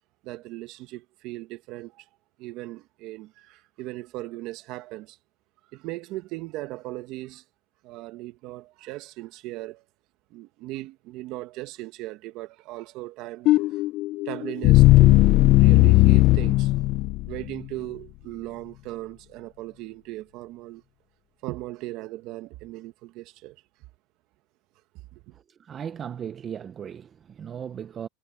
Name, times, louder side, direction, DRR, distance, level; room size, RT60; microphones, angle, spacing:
voice 1, 0.2-2.1 2.4-5.2 5.7-7.4 7.8-9.8 10.3-13.8 14.2-16.7 17.3-20.8 21.4-23.6 25.1-25.3, right 18 dB, 50° right, 1.8 m, -38 dB
sound 1, 13.5-17.5, left 18 dB, 45° left, 0.4 m, -17 dB
voice 2, 25.3-28.1, right 8 dB, 25° right, 0.8 m, -37 dB
supercardioid pair, 145°, 0 cm